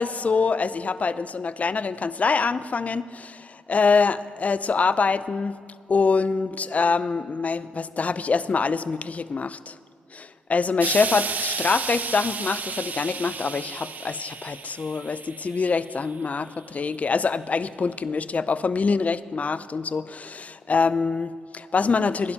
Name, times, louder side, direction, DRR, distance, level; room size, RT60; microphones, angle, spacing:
voice 1, 0.0-5.6 5.9-9.8 10.1-22.3, left 4 dB, 40° left, 15 dB, 0.5 m, -25 dB
Explosion, 10.8-16.1 16.9-17.0, right 5 dB, 50° right, 0.7 m, -32 dB
21.0 x 11.0 x 2.9 m, 2.3 s
cardioid pair, 60°, 4 cm